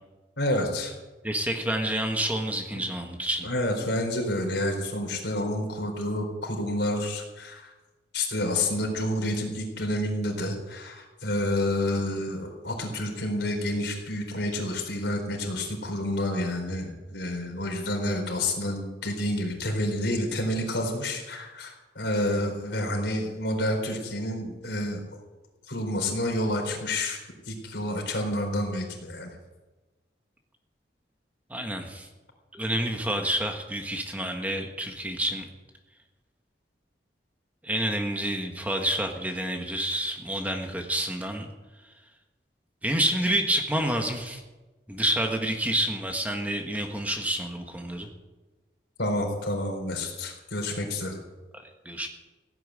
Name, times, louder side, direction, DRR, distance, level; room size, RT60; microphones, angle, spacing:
voice 1, 0.4-0.9 2.7-2.8 3.4-7.7 8.1-25.0 25.7-27.2 27.5-29.3 49.0-51.2, left 1 dB, 80° left, 2 dB, 4.4 m, -29 dB
voice 2, 1.2-3.5 31.5-32.1 32.5-35.5 37.6-41.5 42.8-44.4 44.9-48.1 51.5-52.1, right 1 dB, 10° right, 3 dB, 1.5 m, -28 dB
16.5 x 9.0 x 9.0 m, 1.2 s
head